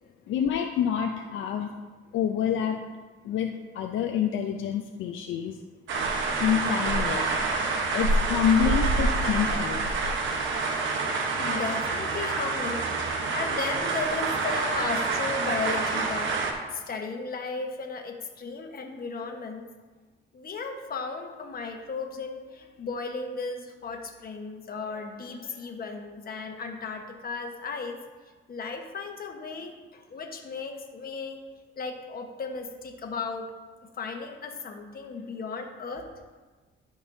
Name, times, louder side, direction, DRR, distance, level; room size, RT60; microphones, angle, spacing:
voice 1, 0.3-1.7 2.1-2.8 3.2-5.6 6.4-7.2 7.9-9.9, left 9 dB, 80° left, 4 dB, 0.5 m, -27 dB
sound 1, 5.9-16.5, right 3 dB, 75° right, 1.1 m, -27 dB
voice 2, 11.2-16.4 16.7-19.7 20.3-28.0 28.5-31.5 31.8-33.5 34.0-36.1, left 4 dB, 50° left, 3 dB, 1.2 m, -35 dB
12.5 x 5.3 x 2.7 m, 1.3 s
cardioid pair, 90°, 20 cm